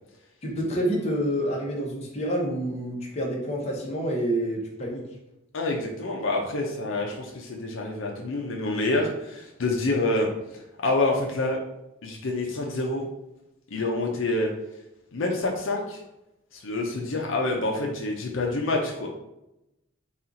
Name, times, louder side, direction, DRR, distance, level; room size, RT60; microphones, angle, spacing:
voice 1, 0.4-5.0, right 1 dB, 30° left, -2 dB, 0.8 m, -28 dB
voice 2, 5.5-10.3 10.8-11.6 12.0-13.1 13.7-14.5 15.1-16.0 16.5-19.1, left 2 dB, 65° left, 0 dB, 0.6 m, -27 dB
4.2 x 2.4 x 3.9 m, 0.89 s
head